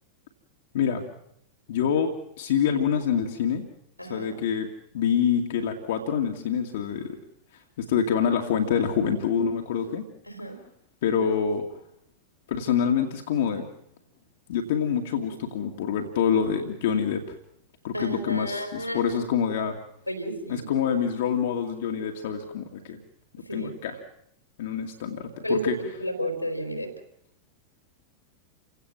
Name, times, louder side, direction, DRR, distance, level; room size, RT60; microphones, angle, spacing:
voice 1, 1.7-3.6 4.0-4.7 4.9-7.2 7.8-10.0 11.0-11.6 12.5-13.7 14.5-17.4 17.8-19.8 20.5-23.0 23.5-24.0 24.6-25.8, left 7 dB, 55° left, 3 dB, 2.3 m, -26 dB
voice 2, 4.0-4.3 10.3-10.6 17.9-19.2 20.1-20.7 23.5-23.7 25.4-26.9, equal, 90° left, 8 dB, 4.2 m, -31 dB
29.5 x 17.0 x 7.6 m, 0.74 s
figure-of-eight pair, 90°, 0 cm